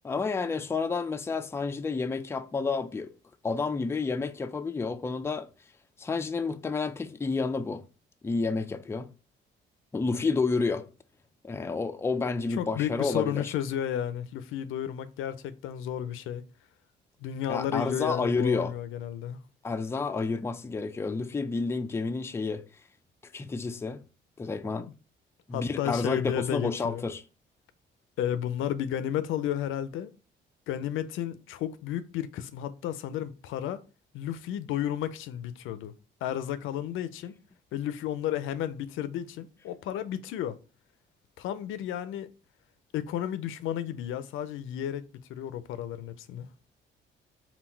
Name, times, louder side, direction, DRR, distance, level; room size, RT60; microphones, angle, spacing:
voice 1, 0.0-3.1 3.4-5.5 6.0-7.8 8.2-9.1 9.9-10.9 11.4-13.5 17.5-18.7 19.6-22.6 23.3-24.0 24.4-24.9 25.5-27.2, left 4 dB, 15° left, 0.3 m, -30 dB
voice 2, 12.6-16.5 17.2-19.4 25.5-27.0 28.2-30.1 30.7-33.8 34.1-35.9 36.2-37.4 37.7-40.6 41.4-42.3 42.9-46.5, left 10 dB, 85° left, 0.4 m, -32 dB
3.8 x 2.3 x 4.4 m
cardioid pair, 90°, 20 cm